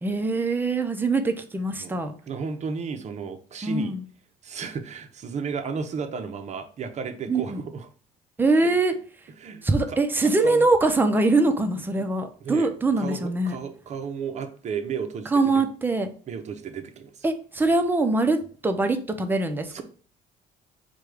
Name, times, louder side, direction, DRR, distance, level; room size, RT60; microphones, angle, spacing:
voice 1, 0.0-2.1 3.6-4.0 7.3-7.6 8.4-8.9 9.6-13.6 15.3-16.1 17.2-19.8, right 2 dB, 10° right, 6 dB, 0.6 m, -23 dB
voice 2, 2.3-3.9 4.4-7.9 8.6-8.7 9.4-10.7 11.9-12.1 12.4-12.7 13.0-15.7 16.3-17.3 19.7-19.8, right 5 dB, 45° right, 6 dB, 0.7 m, -34 dB
4.8 x 2.3 x 4.8 m, 0.41 s
cardioid pair, 110°, 17 cm